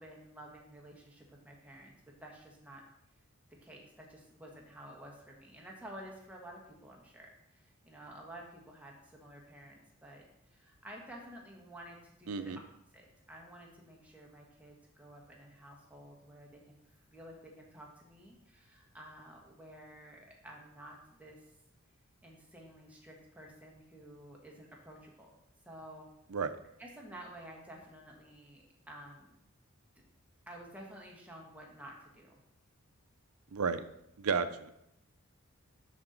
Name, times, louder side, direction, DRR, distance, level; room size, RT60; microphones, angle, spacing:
voice 1, 0.0-1.9 2.2-2.8 3.6-10.2 10.5-12.5 12.9-21.4 22.2-25.3 25.7-26.1 26.8-29.4 30.5-32.4, right 1 dB, 5° right, -1 dB, 1.2 m, -52 dB
voice 2, 12.3-12.6 26.3-26.5 33.5-33.8 34.2-34.9, right 5 dB, 80° right, 11 dB, 0.5 m, -33 dB
10.5 x 4.0 x 3.9 m, 0.80 s
head